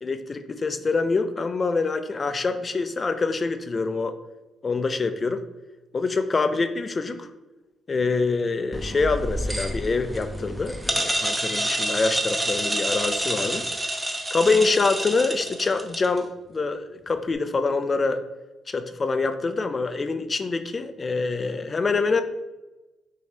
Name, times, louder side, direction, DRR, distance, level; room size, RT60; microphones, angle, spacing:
voice 1, 0.0-4.2 4.6-5.4 5.9-7.3 7.9-13.7 14.3-18.2 18.7-22.2, left 3 dB, 35° left, 9 dB, 0.4 m, -25 dB
sound 1, 8.7-16.2, right 1 dB, 10° right, 0.7 m, -28 dB
5.8 x 2.8 x 3.2 m, 1.1 s
cardioid pair, 90°, 0 cm